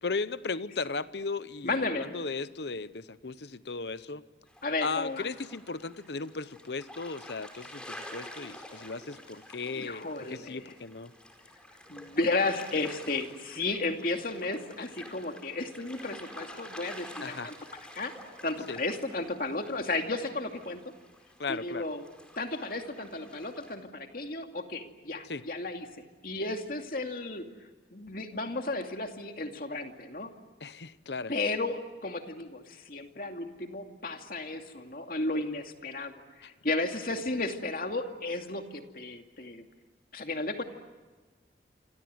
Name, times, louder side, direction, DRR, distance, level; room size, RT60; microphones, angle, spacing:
voice 1, 0.0-4.2 4.8-11.1 17.2-17.5 18.7-18.8 21.4-21.8 25.3-25.4 30.6-31.3, left 4 dB, 70° left, 15 dB, 0.9 m, -36 dB
voice 2, 1.6-2.1 4.6-5.3 9.7-10.8 11.9-17.5 17.9-20.8 21.5-22.0 22.4-27.5 27.9-30.3 31.3-39.6 40.1-40.6, left 2 dB, 50° left, 4 dB, 2.5 m, -34 dB
sound 1, 4.5-23.8, left 1 dB, 5° left, 4.5 m, -49 dB
28.0 x 26.5 x 7.9 m, 1.3 s
head